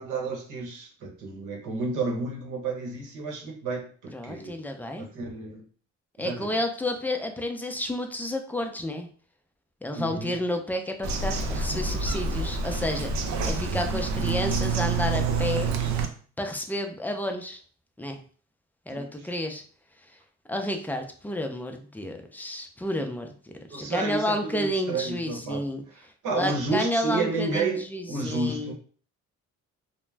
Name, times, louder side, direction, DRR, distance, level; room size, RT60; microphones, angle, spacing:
voice 1, 0.0-4.6 5.0-5.7 6.2-6.6 9.9-10.4 18.9-19.3 23.7-28.7, right 3 dB, 85° right, 0 dB, 0.9 m, -31 dB
voice 2, 4.1-5.1 6.2-9.1 9.8-15.7 16.4-17.6 18.0-18.2 18.9-19.6 20.5-23.3 23.7-25.8 26.3-28.7, left 1 dB, 5° left, 4 dB, 0.4 m, -30 dB
Bird vocalization bird call bird song, 11.0-16.1, right 4 dB, 65° right, 0.5 m, -27 dB
2.3 x 2.1 x 3.2 m, 0.44 s
cardioid pair, 90°, 30 cm